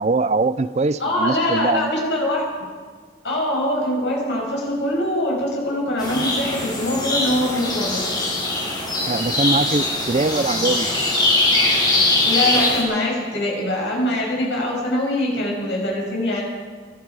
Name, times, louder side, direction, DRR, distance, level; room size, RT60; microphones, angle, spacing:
voice 1, 0.0-1.9 9.1-10.9, right 3 dB, 40° right, 15 dB, 0.5 m, -22 dB
voice 2, 1.0-2.4 3.2-8.1 12.2-16.4, left 1 dB, 90° left, -2 dB, 6.4 m, -23 dB
sound 1, 6.0-12.8, left 2 dB, 25° left, 4.9 m, -21 dB
24.0 x 12.5 x 4.8 m, 1.6 s
head